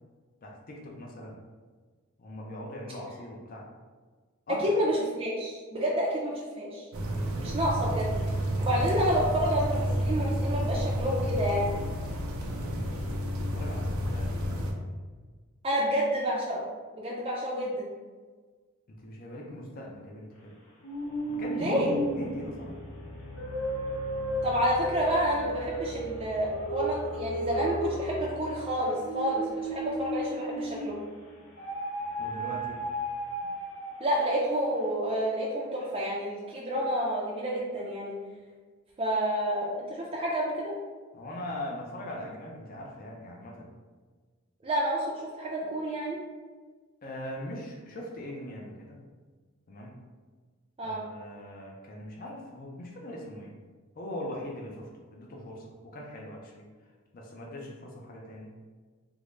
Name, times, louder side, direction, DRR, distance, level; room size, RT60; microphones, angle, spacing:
voice 1, 0.4-1.4 2.2-3.7 4.5-4.7 12.5-13.1 13.5-14.9 18.9-20.6 21.3-22.8 32.2-32.8 41.1-43.7 47.0-49.0 49.7-50.0 50.8-53.5 54.0-56.7 57.1-58.5, left 1 dB, 45° left, -1 dB, 0.4 m, -40 dB
voice 2, 4.5-6.8 7.4-8.1 8.6-11.7 15.6-16.6 16.9-17.9 21.6-21.9 24.4-31.0 34.0-38.1 39.0-40.7 44.6-45.0 45.3-46.2 50.8-51.0, equal, 25° right, -5 dB, 0.4 m, -29 dB
sound 1, 6.9-14.7, equal, 90° right, 0.5 m, -30 dB
sound 2, 20.8-31.0 31.6-34.3, right 1 dB, 85° left, 0.9 m, -34 dB
3.6 x 2.0 x 3.1 m, 1.4 s
head